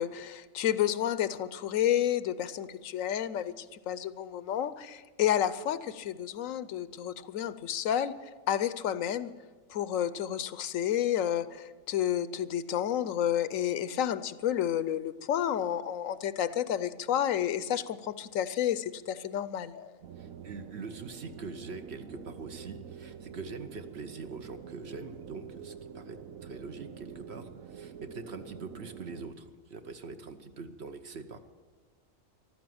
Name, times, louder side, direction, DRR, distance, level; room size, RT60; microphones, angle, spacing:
voice 1, 0.0-8.1 8.5-9.3 9.7-20.0, left 10 dB, 75° left, 15 dB, 1.0 m, -30 dB
sound 1, 20.0-29.3, right 7 dB, 85° right, 1.2 m, -47 dB
voice 2, 20.2-31.4, right 4 dB, 55° right, 8 dB, 1.1 m, -43 dB
14.5 x 12.5 x 7.8 m, 1.4 s
omnidirectional pair, 1.4 m